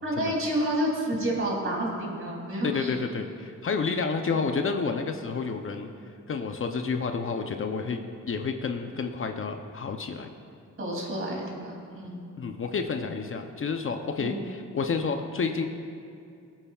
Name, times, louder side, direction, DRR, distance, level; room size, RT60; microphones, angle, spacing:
voice 1, 0.0-2.9 4.3-4.4 10.8-12.2 14.2-14.4, right 1 dB, 45° right, -2 dB, 3.0 m, -30 dB
voice 2, 2.6-5.9 6.3-10.3 12.4-15.7, left 5 dB, 45° left, 5 dB, 0.6 m, -30 dB
20.5 x 9.0 x 2.4 m, 2.4 s
cardioid pair, 95°, 30 cm